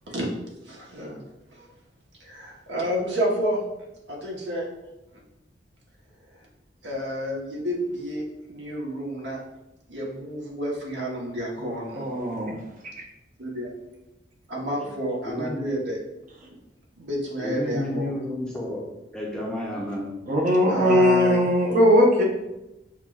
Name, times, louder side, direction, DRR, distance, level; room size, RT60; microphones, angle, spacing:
voice 1, 0.6-1.2 2.2-3.6 4.1-4.6 6.3-6.4 6.8-9.4 9.9-12.1 13.4-13.7 14.5-16.0 16.4-16.6 16.9-18.1 20.6-21.5, equal, 70° right, -2 dB, 1.0 m, -30 dB
voice 2, 11.9-12.5 20.3-22.2, equal, 45° right, -1 dB, 0.7 m, -19 dB
voice 3, 15.2-15.7 17.4-18.8 19.1-20.1, left 1 dB, 5° left, -4 dB, 0.5 m, -31 dB
5.7 x 2.2 x 2.3 m, 0.93 s
head